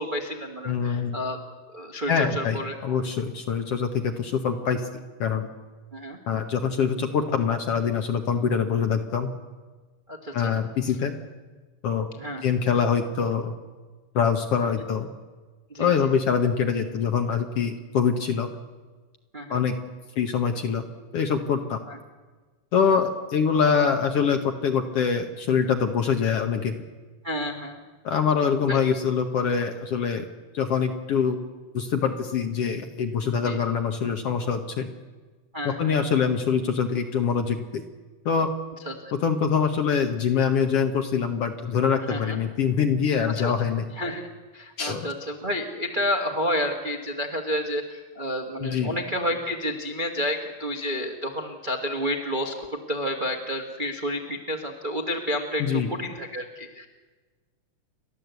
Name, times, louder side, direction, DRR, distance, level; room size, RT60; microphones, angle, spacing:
voice 1, 0.0-1.4 1.7-2.7 5.9-6.2 10.1-10.5 12.1-12.4 15.7-15.9 19.3-19.6 21.9-22.0 27.2-27.8 28.7-28.8 33.4-33.6 35.5-35.9 38.8-39.0 42.1-42.4 43.4-43.5 43.9-44.3 44.5-56.9, equal, 35° right, 2 dB, 0.8 m, -30 dB
voice 2, 0.7-1.2 2.1-4.9 5.2-5.5 6.3-9.3 10.3-11.1 11.8-12.1 12.4-13.5 14.1-15.1 15.8-18.5 19.5-19.8 20.2-20.8 21.1-21.8 22.7-26.7 28.0-30.2 30.5-31.4 31.7-34.9 35.6-37.8 38.2-38.5 39.1-43.8 44.8-45.1 48.6-48.9 55.6-55.9, left 6 dB, 60° left, 6 dB, 1.7 m, -24 dB
29.5 x 12.0 x 8.1 m, 1.3 s
omnidirectional pair, 3.7 m